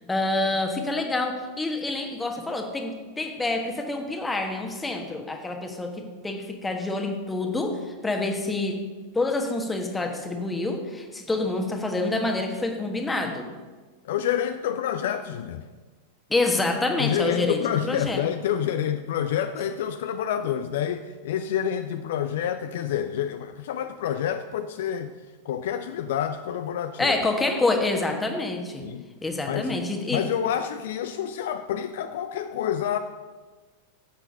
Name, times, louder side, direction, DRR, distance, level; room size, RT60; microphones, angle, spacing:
voice 1, 0.1-5.9 6.2-8.8 9.1-13.5 16.3-17.6 17.8-18.2 27.0-28.8 29.2-30.3, left 2 dB, 10° left, 3 dB, 1.4 m, -27 dB
voice 2, 14.0-15.7 17.0-25.1 25.4-27.1 28.8-29.0 29.5-33.0, left 9 dB, 55° left, 9 dB, 0.5 m, -28 dB
10.5 x 7.9 x 5.3 m, 1.3 s
figure-of-eight pair, 90°, 0 cm